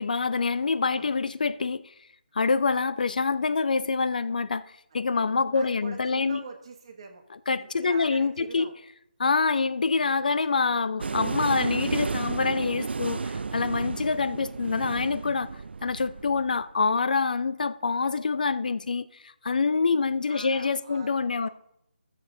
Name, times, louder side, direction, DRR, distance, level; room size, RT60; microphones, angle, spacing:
voice 1, 0.0-1.9 2.3-4.6 4.9-6.4 7.5-8.7 9.2-21.5, left 4 dB, 50° left, 0.4 m, -26 dB
voice 2, 5.5-7.2 7.6-8.7 19.6-19.8 20.3-21.1 21.4-21.5, right 5 dB, 30° right, 1.4 m, -44 dB
sound 1, 11.0-16.6, right 4 dB, 80° right, 0.3 m, -32 dB
13.5 x 6.9 x 3.8 m
figure-of-eight pair, 170°, 6 cm